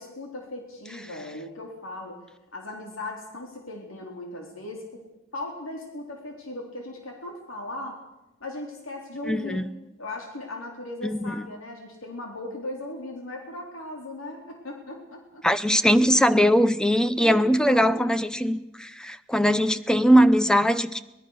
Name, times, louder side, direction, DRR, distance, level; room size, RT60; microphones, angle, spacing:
voice 1, 0.0-2.2 2.5-5.0 5.3-8.0 8.4-9.6 10.0-15.5 17.2-18.2, left 2 dB, 85° left, 1 dB, 3.9 m, -38 dB
voice 2, 9.3-9.6 11.0-11.5 15.4-21.0, equal, 5° left, 12 dB, 0.7 m, -21 dB
24.0 x 19.5 x 6.5 m, 0.91 s
head